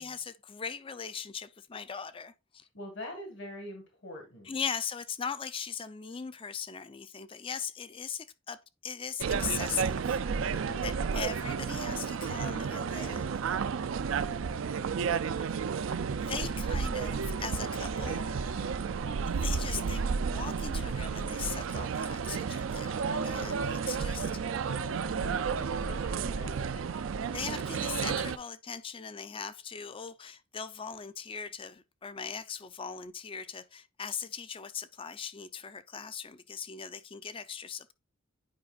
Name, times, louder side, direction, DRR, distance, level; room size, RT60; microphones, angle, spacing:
voice 1, 0.0-2.7 4.5-13.4 15.4-15.5 16.2-18.3 19.4-24.3 27.3-37.9, left 6 dB, 25° left, 0.4 m, -39 dB
voice 2, 2.7-4.6 10.6-11.3 23.6-27.2, left 1 dB, 60° left, 1.7 m, -47 dB
sound 1, 9.2-28.4, right 6 dB, 70° right, 0.4 m, -32 dB
sound 2, 17.3-19.5 22.8-26.0, left 8 dB, 80° left, 0.9 m, -50 dB
9.5 x 5.0 x 2.4 m
head